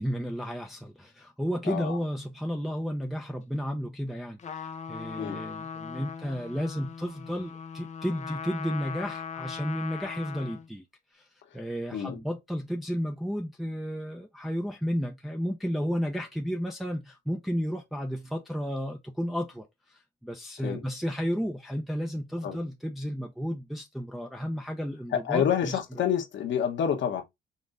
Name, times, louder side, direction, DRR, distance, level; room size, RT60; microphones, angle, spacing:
voice 1, 0.0-10.8 11.1-11.3 11.5-26.0, equal, ahead, 0.7 m, -33 dB
Trumpet, 4.4-10.7, left 7 dB, 35° left, 0.6 m, -39 dB
voice 2, 25.1-27.2, left 8 dB, 70° left, 1.3 m, -28 dB
5.3 x 3.1 x 2.6 m
cardioid pair, 90°, 20 cm